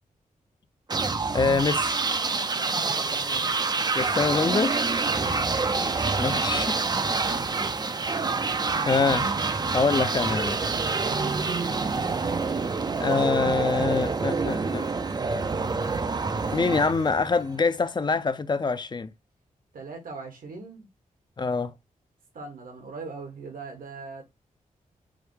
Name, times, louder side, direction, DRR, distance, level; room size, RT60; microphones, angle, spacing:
sound 1, 0.9-17.6, right 4 dB, 30° right, 0.5 m, -27 dB
voice 1, 1.3-2.0 4.0-4.8 6.2-6.8 8.5-9.3 9.7-10.6 13.0-14.8 16.5-19.1 21.4-21.7, left 4 dB, 30° left, 0.5 m, -25 dB
voice 2, 2.5-4.5 5.0-5.4 7.0-7.5 11.0-11.4 19.7-20.9 22.3-24.2, right 4 dB, 75° right, 1.3 m, -41 dB
5.0 x 2.1 x 4.6 m
wide cardioid pair, 95°, 14 cm